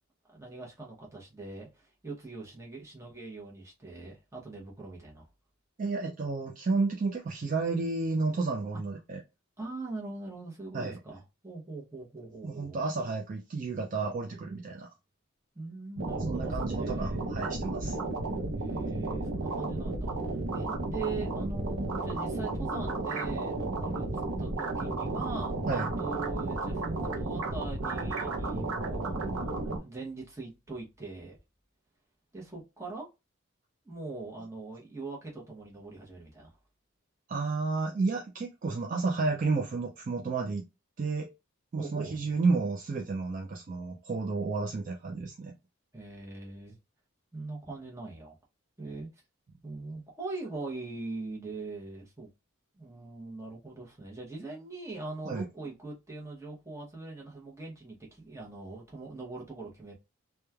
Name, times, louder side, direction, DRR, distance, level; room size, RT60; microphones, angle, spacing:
voice 1, 0.3-5.3 9.6-12.8 15.5-17.1 18.6-24.1 24.4-31.4 32.3-33.1 33.8-36.5 41.8-42.2 45.9-46.8 47.3-48.4 48.8-49.1 49.6-52.3 52.7-59.9, right 3 dB, 15° right, 0.8 m, -41 dB
voice 2, 5.8-9.2 10.7-11.0 12.4-14.9 16.3-18.0 25.7-25.9 37.3-40.6 41.0-41.3 41.7-45.5 55.2-55.5, right 3 dB, 40° right, 0.3 m, -31 dB
sound 1, 16.0-29.8, right 2 dB, 85° right, 0.6 m, -33 dB
3.0 x 2.2 x 2.2 m
head